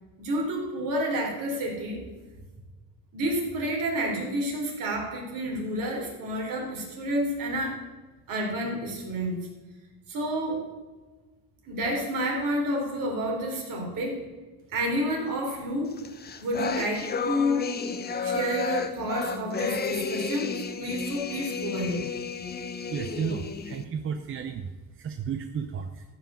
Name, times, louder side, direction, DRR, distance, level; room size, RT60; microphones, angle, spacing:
voice 1, 0.2-2.0 3.1-7.8 8.3-9.4 10.1-10.7 11.6-14.2 14.7-16.0 16.4-17.7 18.2-20.5 20.8-22.1, equal, 65° right, -1 dB, 4.2 m, -29 dB
sound 1, 16.0-23.8, left 5 dB, 25° left, 0.8 m, -32 dB
voice 2, 22.9-24.7 25.0-26.0, right 7 dB, 35° right, 7 dB, 0.7 m, -33 dB
14.0 x 5.8 x 7.1 m, 1.3 s
cardioid pair, 130°, 36 cm